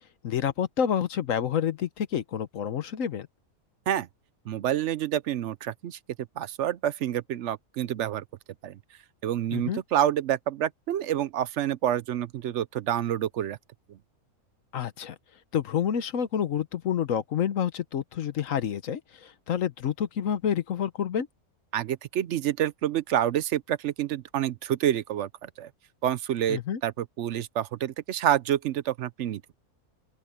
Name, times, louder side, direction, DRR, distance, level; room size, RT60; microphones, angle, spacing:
voice 1, 0.2-3.3 9.5-9.8 14.7-15.1 15.5-21.3 26.5-26.8, left 8 dB, 65° left, 1.2 m, -28 dB
voice 2, 4.5-6.0 6.4-8.2 8.6-8.8 9.2-13.6 21.7-25.7 26.0-29.5, right 11 dB, 65° right, 0.8 m, -28 dB
open air
omnidirectional pair, 1.5 m